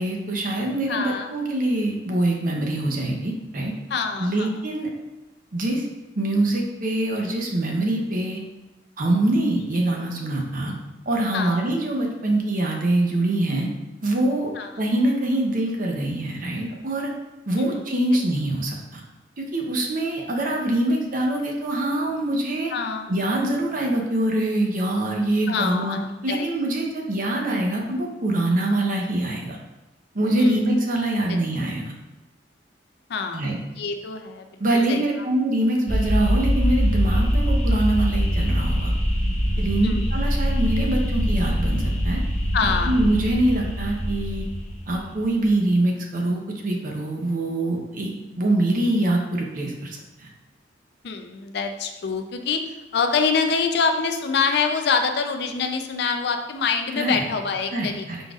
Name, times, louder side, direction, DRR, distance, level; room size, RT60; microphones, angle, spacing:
voice 1, 0.0-3.7 4.2-4.9 5.5-5.8 6.2-8.4 9.0-10.7 11.1-13.7 14.0-17.1 17.5-19.0 19.4-22.7 23.1-29.6 30.1-31.9 33.3-33.6 34.6-38.9 39.6-42.2 42.8-44.4 44.9-50.3 56.9-57.3 57.7-58.2, right 1 dB, 50° right, 0 dB, 0.7 m, -24 dB
voice 2, 0.9-1.3 3.9-4.5 9.5-9.9 11.3-11.6 14.6-14.7 17.6-17.8 22.7-23.1 25.5-26.0 26.3-26.5 30.4-30.6 31.3-31.4 33.1-33.4 33.7-34.5 34.9-35.0 39.8-40.0 42.5-43.0 51.0-52.6 52.9-58.1, left 5 dB, 65° left, 6 dB, 0.4 m, -25 dB
sound 1, 35.9-45.1, equal, 40° left, 1.0 m, -23 dB
5.0 x 3.9 x 2.4 m, 1.0 s
head